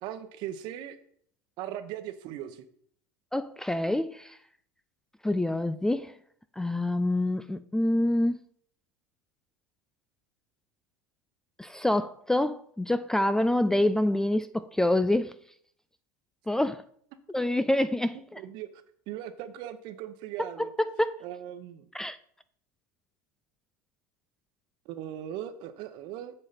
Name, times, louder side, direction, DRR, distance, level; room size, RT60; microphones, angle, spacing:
voice 1, 0.0-1.0 1.6-2.6 18.4-20.7 21.2-21.9 24.8-26.3, right 11 dB, 55° right, 1.0 m, -39 dB
voice 2, 3.3-4.4 5.2-6.1 6.6-8.4 11.6-15.3 16.5-16.8 17.3-18.4 20.4-21.2 21.9-22.2, left 1 dB, 5° left, 0.3 m, -26 dB
7.7 x 7.6 x 4.2 m
hypercardioid pair, 100°, 9 cm